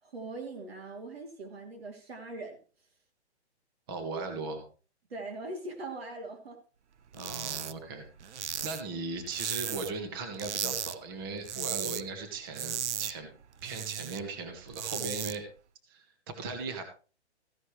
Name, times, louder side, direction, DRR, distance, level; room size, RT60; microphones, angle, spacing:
voice 1, 0.0-2.6 5.1-6.6, right 2 dB, 60° right, 2 dB, 3.2 m, -41 dB
voice 2, 3.9-4.7 7.1-13.3 13.6-15.5 15.9-16.8, right 3 dB, 20° right, 6 dB, 1.6 m, -38 dB
sound 1, 7.1-7.7 8.0-10.0 10.4-11.0 11.3-12.0 12.3-14.2 14.6-15.4, right 9 dB, 80° right, 0.8 m, -36 dB
15.0 x 11.0 x 3.3 m, 0.36 s
hypercardioid pair, 175°, 34 cm